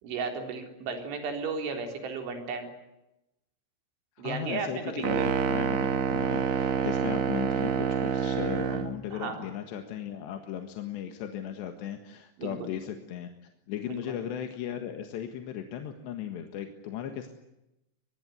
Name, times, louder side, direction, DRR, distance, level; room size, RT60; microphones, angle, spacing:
voice 1, 0.0-2.7 4.2-5.3 9.1-9.5 12.4-12.5 13.9-14.0, right 4 dB, 80° right, 4 dB, 6.4 m, -34 dB
voice 2, 4.2-13.3 13.7-17.3, left 9 dB, 70° left, 6 dB, 3.7 m, -37 dB
sound 1, 5.0-9.0, right 7 dB, 55° right, 3.0 m, -27 dB
24.0 x 22.5 x 9.6 m, 0.91 s
omnidirectional pair, 5.4 m